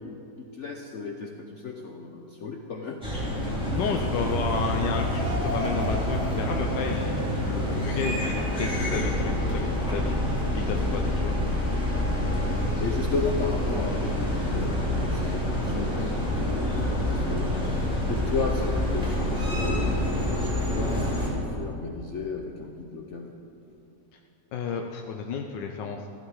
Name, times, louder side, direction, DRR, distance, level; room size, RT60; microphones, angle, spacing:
voice 1, 0.0-3.0 3.2-3.3 3.6-3.7 12.8-17.8 18.1-23.3, left 4 dB, 55° left, 2 dB, 0.9 m, -34 dB
sound 1, 3.0-21.3, left 1 dB, 5° right, 3.2 m, -27 dB
voice 2, 3.7-11.3 24.1-24.2 24.5-26.1, left 6 dB, 80° left, 3 dB, 1.4 m, -32 dB
sound 2, 4.1-8.6, equal, 50° right, 3.7 m, -37 dB
14.5 x 12.5 x 4.8 m, 2.7 s
omnidirectional pair, 1.9 m